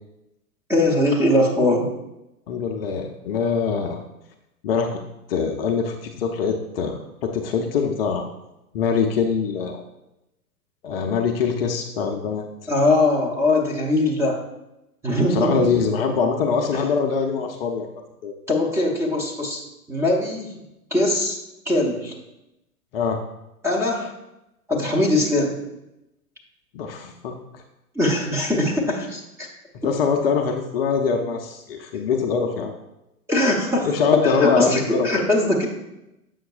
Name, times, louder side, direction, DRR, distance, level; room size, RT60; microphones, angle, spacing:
voice 1, 0.7-1.9 12.7-14.4 15.0-15.7 16.7-16.8 18.5-19.6 19.9-20.6 20.9-21.4 21.7-22.1 23.6-24.1 24.7-25.6 27.9-29.5 33.3-35.7, left 1 dB, 5° right, -3 dB, 0.8 m, -21 dB
voice 2, 2.5-4.0 4.6-5.0 5.3-8.3 8.7-9.8 10.8-12.4 15.3-17.9 18.2-18.3 22.9-23.2 26.7-27.4 29.8-32.7 33.8-35.1, left 5 dB, 40° left, 3 dB, 0.6 m, -23 dB
7.8 x 5.8 x 2.4 m, 0.91 s
figure-of-eight pair, 115°, 45 cm